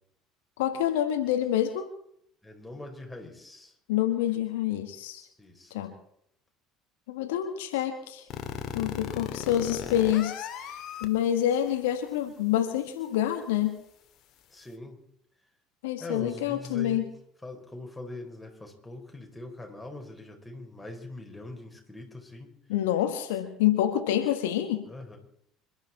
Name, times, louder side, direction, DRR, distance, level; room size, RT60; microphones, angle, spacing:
voice 1, 0.6-1.9 3.9-5.3 5.7-5.9 7.1-8.3 8.7-13.8 15.8-17.0 22.7-24.9, left 11 dB, 70° left, 7 dB, 1.5 m, -27 dB
voice 2, 2.4-3.7 5.4-5.7 14.5-15.0 16.0-17.1 17.4-22.5 24.8-25.2, left 2 dB, 10° left, 1 dB, 4.7 m, -42 dB
sound 1, 8.3-11.0, left 9 dB, 50° left, 2.0 m, -35 dB
27.0 x 12.0 x 4.3 m, 0.71 s
figure-of-eight pair, 60°, 0 cm